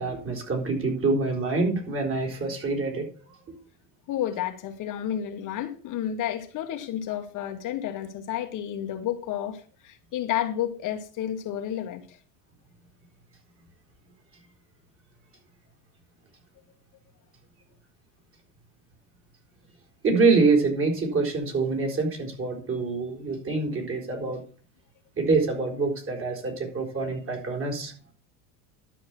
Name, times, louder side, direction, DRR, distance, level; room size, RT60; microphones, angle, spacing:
voice 1, 0.0-3.1 20.0-24.4 25.2-27.9, right 3 dB, 30° right, 4.0 m, -25 dB
voice 2, 4.1-12.2, left 10 dB, 50° left, 1.4 m, -31 dB
12.0 x 5.4 x 6.0 m
supercardioid pair, 110°, 41 cm